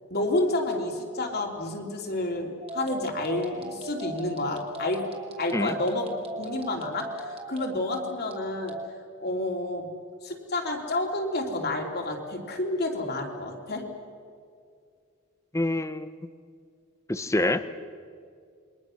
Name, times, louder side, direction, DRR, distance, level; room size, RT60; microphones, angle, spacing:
voice 1, 0.1-5.1 5.4-6.1 6.4-8.8 9.2-9.9 10.2-13.9, left 2 dB, 50° left, 1 dB, 3.2 m, -29 dB
sound 1, 2.6-8.9, right 2 dB, 30° right, 2.9 m, -38 dB
voice 2, 15.5-16.1 17.1-17.6, left 1 dB, 15° left, 12 dB, 0.7 m, -26 dB
28.0 x 23.0 x 6.4 m, 2.3 s
head